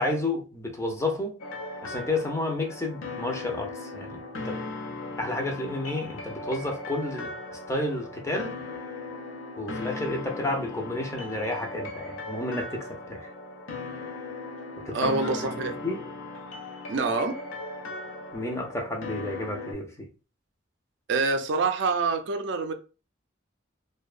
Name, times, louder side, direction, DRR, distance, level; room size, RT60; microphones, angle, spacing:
voice 1, 0.0-1.4 1.8-4.6 5.2-7.3 7.7-8.6 9.6-13.3 14.8-15.5 15.8-16.0 18.3-20.1, left 2 dB, 15° left, 0.5 m, -31 dB
sound 1, 1.4-19.7, left 2 dB, 85° left, 0.5 m, -38 dB
voice 2, 14.9-15.8 16.9-17.4 21.1-22.7, right 4 dB, 60° right, 0.4 m, -26 dB
2.6 x 2.1 x 2.4 m
head